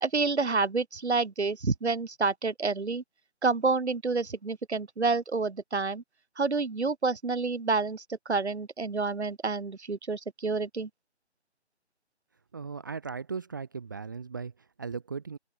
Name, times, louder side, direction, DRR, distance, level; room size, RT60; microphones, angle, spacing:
voice 1, 0.0-3.0 3.4-6.0 6.4-10.9, right 4 dB, 80° right, 2.5 m, -28 dB
voice 2, 12.5-15.4, right 5 dB, 20° right, 1.3 m, -37 dB
open air
figure-of-eight pair, 175°, 33 cm